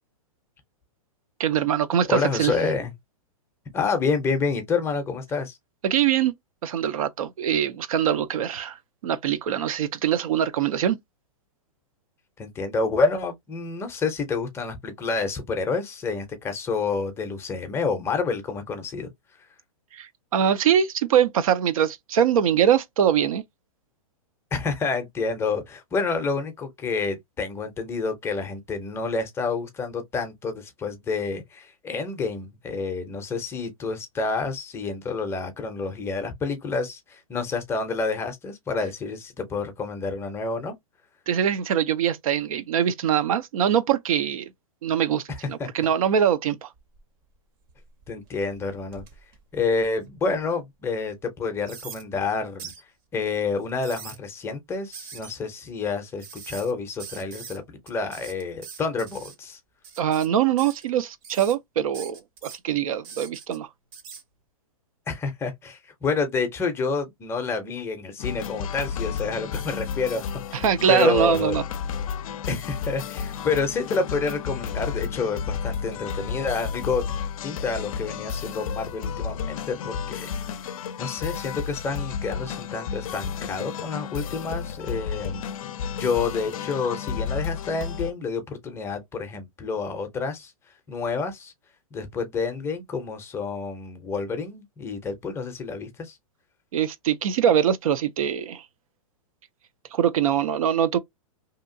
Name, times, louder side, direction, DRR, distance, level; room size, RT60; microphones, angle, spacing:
voice 1, 1.4-2.5 5.8-6.3 6.6-11.0 19.9-23.4 41.3-44.5 44.8-46.7 60.0-63.7 70.5-71.6 96.7-98.7 99.9-101.0, right 9 dB, 75° right, 0.5 m, -23 dB
voice 2, 2.1-2.9 3.7-5.6 12.4-19.1 24.5-40.7 45.6-45.7 48.1-49.0 49.5-52.7 53.1-59.6 65.1-71.6 72.5-80.4 81.0-85.4 85.9-90.5 90.9-91.5 91.9-96.2, left 4 dB, 15° left, 0.5 m, -28 dB
sound 1, 46.7-47.2 47.7-50.3 50.8-50.9 51.6-52.0 52.6-52.8 53.6-54.2 54.9-55.3 56.2-56.7 57.0-57.6 57.9-59.3 59.8-60.3 60.6-60.9 61.2-61.5 61.9-62.6 63.0-63.6 63.9-64.2, right 7 dB, 40° right, 0.7 m, -42 dB
sound 2, 68.2-88.1, left 7 dB, 70° left, 0.4 m, -32 dB
2.8 x 2.3 x 2.5 m
hypercardioid pair, 140°, 18 cm